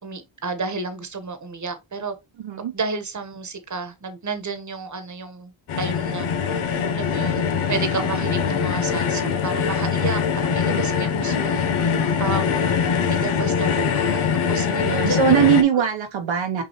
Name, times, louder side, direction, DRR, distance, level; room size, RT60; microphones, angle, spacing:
voice 1, 0.0-2.1 2.7-5.5 5.8-6.3 6.9-11.7 12.2-12.6 13.1-14.2 14.5-15.5, right 4 dB, 35° right, 1.2 m, -31 dB
sound 1, 5.7-15.6, left 6 dB, 80° left, 0.9 m, -23 dB
voice 2, 14.7-16.6, right 8 dB, 65° right, 0.9 m, -20 dB
5.4 x 2.7 x 2.9 m
cardioid pair, 50°, 49 cm